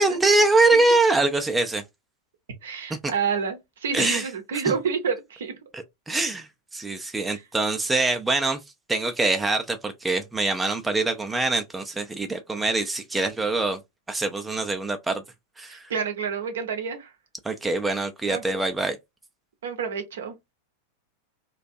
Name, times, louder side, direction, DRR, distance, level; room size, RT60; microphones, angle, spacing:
voice 1, 0.0-1.8 3.0-3.1 3.9-4.3 4.7-4.8 5.7-8.6 8.9-13.8 14.1-15.2 15.6-15.9 17.4-19.0, right 2 dB, 10° right, 0.3 m, -24 dB
voice 2, 2.6-5.5 7.3-7.4 15.7-17.1 18.3-18.4 19.6-20.4, right 6 dB, 60° right, 0.6 m, -29 dB
2.5 x 2.2 x 2.5 m
figure-of-eight pair, 90°, 0 cm